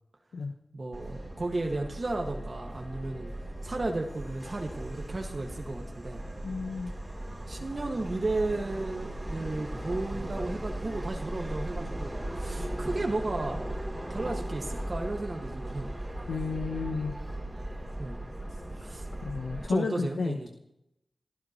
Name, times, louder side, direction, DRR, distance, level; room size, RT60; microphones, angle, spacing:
voice 1, 0.7-3.3 3.6-6.2 7.5-13.6 14.1-15.9 18.0-18.3 18.8-19.1 19.7-20.5, right 2 dB, 50° right, 1 dB, 1.8 m, -34 dB
Subway metro underground, 0.9-19.7, right 1 dB, 25° right, 3.2 m, -37 dB
voice 2, 6.4-6.9 16.3-17.2 19.2-20.5, left 4 dB, 90° left, 6 dB, 0.8 m, -32 dB
27.5 x 15.0 x 3.1 m, 0.84 s
cardioid pair, 40°, 0 cm